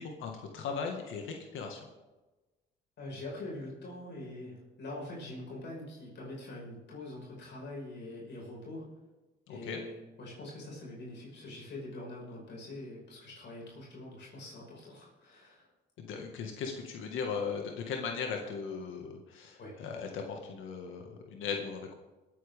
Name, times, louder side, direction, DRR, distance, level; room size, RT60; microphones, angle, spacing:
voice 1, 0.0-1.8 9.5-9.8 16.0-21.9, left 5 dB, 85° left, 2 dB, 1.9 m, -38 dB
voice 2, 3.0-8.9 9.5-15.7 19.6-19.7, left 2 dB, 60° left, -3 dB, 5.7 m, -44 dB
22.5 x 9.0 x 3.6 m, 1.1 s
cardioid pair, 90°, 20 cm